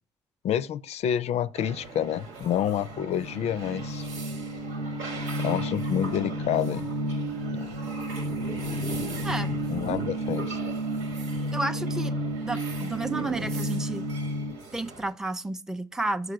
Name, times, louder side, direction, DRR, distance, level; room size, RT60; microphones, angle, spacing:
voice 1, 0.4-4.1 5.4-6.9 7.5-7.7 9.7-10.6, left 10 dB, 60° left, 0.4 m, -28 dB
sound 1, 1.5-15.1, right 3 dB, 80° right, 1.3 m, -40 dB
sound 2, 2.8-14.5, right 1 dB, 50° right, 0.9 m, -32 dB
voice 2, 9.2-9.6 11.5-12.1 12.4-14.0 14.7-16.3, right 2 dB, 5° right, 0.5 m, -31 dB
6.6 x 4.8 x 4.6 m
hypercardioid pair, 45°, 13 cm